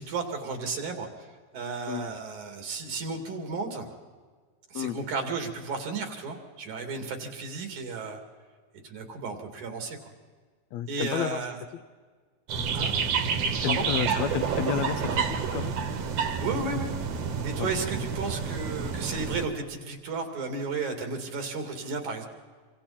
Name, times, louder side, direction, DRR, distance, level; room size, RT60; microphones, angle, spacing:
voice 1, 0.0-3.9 4.7-8.2 8.8-10.0 10.9-11.6 12.7-12.9 13.7-13.9 16.4-16.9 17.4-22.3, right 4 dB, 80° right, 4 dB, 4.0 m, -33 dB
voice 2, 10.7-11.4 13.6-15.8 17.6-17.7, left 10 dB, 75° left, 12 dB, 1.9 m, -31 dB
sound 1, 12.5-19.5, right 6 dB, 60° right, 2.4 m, -29 dB
26.5 x 26.0 x 4.4 m, 1.5 s
omnidirectional pair, 3.4 m